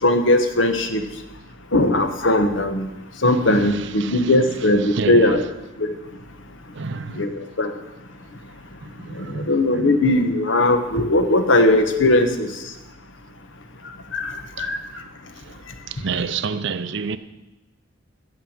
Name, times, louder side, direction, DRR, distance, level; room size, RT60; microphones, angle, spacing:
voice 1, 0.0-1.0 1.7-2.9 3.2-5.4 5.8-5.9 7.1-7.7 9.1-12.5 14.1-14.8, left 1 dB, 65° left, 1.2 m, -19 dB
voice 2, 3.3-5.5 6.7-7.3 8.8-10.0 14.6-14.7 15.4-15.6 15.9-17.2, right 5 dB, 60° right, 0.6 m, -30 dB
9.2 x 6.9 x 8.7 m
head